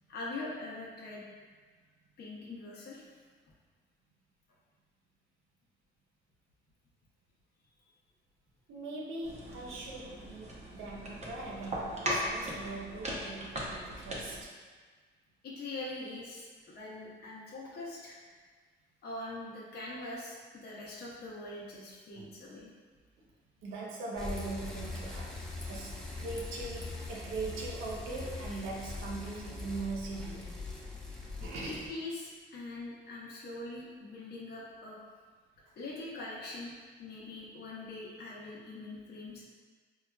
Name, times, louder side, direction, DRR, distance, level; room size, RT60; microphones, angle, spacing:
voice 1, 0.1-1.2 2.2-3.0 10.1-10.2 15.4-18.2 19.0-22.7 31.6-35.0 35.8-36.7 37.0-39.4, left 2 dB, 55° left, -6 dB, 0.7 m, -43 dB
voice 2, 8.7-14.5 22.1-22.3 23.6-30.6 31.4-31.9, right 3 dB, 90° right, -3 dB, 0.6 m, -41 dB
sound 1, 9.2-14.4, equal, 35° right, 0.7 m, -38 dB
Bicycle, 24.2-31.9, left 3 dB, 5° left, 0.5 m, -41 dB
4.5 x 2.3 x 2.3 m, 1.5 s
cardioid pair, 90°, 20 cm